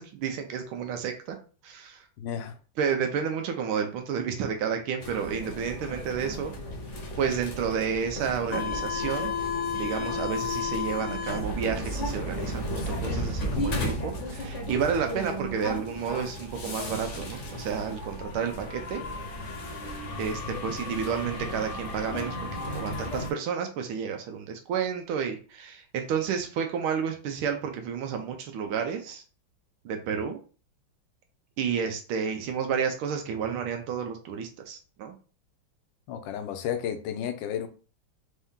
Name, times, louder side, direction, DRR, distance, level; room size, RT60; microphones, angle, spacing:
voice 1, 0.0-1.4 1.6-2.0 2.8-6.5 7.2-9.3 9.7-19.0 20.2-22.4 22.6-29.2 29.8-30.4 31.6-35.1, right 7 dB, 85° right, 1.5 m, -31 dB
voice 2, 2.2-2.6 36.1-37.7, left 9 dB, 75° left, 1.2 m, -32 dB
sound 1, 5.0-23.3, left 2 dB, 50° left, 1.0 m, -33 dB
4.5 x 2.7 x 3.6 m
omnidirectional pair, 2.2 m